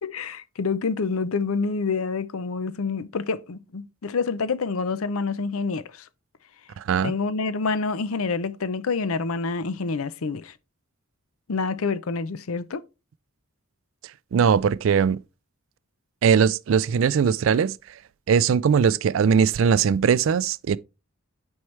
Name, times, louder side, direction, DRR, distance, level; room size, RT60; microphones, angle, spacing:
voice 1, 0.0-6.1 7.0-10.5 11.5-12.8, left 4 dB, 85° left, 0.6 m, -27 dB
voice 2, 6.8-7.1 14.3-15.2 16.2-17.8 18.3-20.8, right 7 dB, 65° right, 0.3 m, -20 dB
9.6 x 4.5 x 3.2 m
head